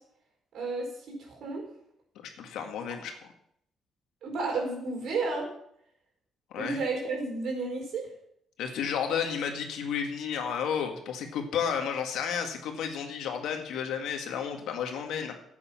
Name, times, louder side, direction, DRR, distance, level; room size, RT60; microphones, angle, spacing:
voice 1, 0.5-0.9 1.2-1.6 4.2-5.5 6.6-8.1, right 3 dB, 70° right, 1 dB, 4.7 m, -31 dB
voice 2, 2.4-3.1 6.5-6.8 8.6-15.4, left 7 dB, 85° left, 4 dB, 1.9 m, -32 dB
11.5 x 8.5 x 5.8 m, 0.71 s
cardioid pair, 90°, 0 cm